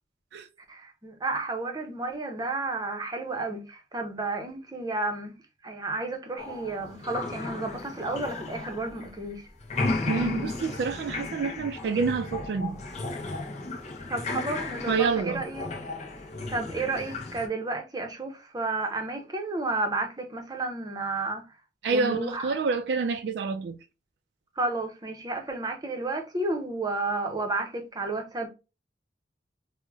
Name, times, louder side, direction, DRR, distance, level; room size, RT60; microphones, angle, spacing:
voice 1, 0.7-5.3 5.6-9.4 14.1-15.7 16.5-21.4 21.9-22.5 24.6-28.5, right 2 dB, 20° right, 0.6 m, -32 dB
sound 1, 6.4-9.3 9.6-17.5, left 3 dB, 40° left, 0.6 m, -34 dB
voice 2, 10.1-12.8 14.9-15.4 21.8-23.8, right 4 dB, 70° right, 0.3 m, -28 dB
4.5 x 2.0 x 2.3 m
head